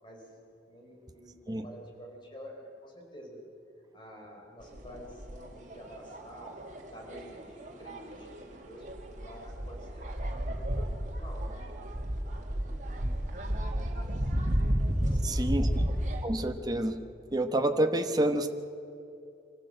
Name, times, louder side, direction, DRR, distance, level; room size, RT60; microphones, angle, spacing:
voice 1, 0.7-3.4 3.9-6.6 6.9-8.9 9.2-11.6 15.1-15.7, equal, 25° left, 0 dB, 4.6 m, -49 dB
sound 1, 4.6-16.2, equal, 45° right, 2.3 m, -32 dB
voice 2, 15.2-15.7 16.2-17.0 17.3-18.5, right 1 dB, 20° right, 5 dB, 1.0 m, -28 dB
25.0 x 15.0 x 7.7 m, 2.7 s
head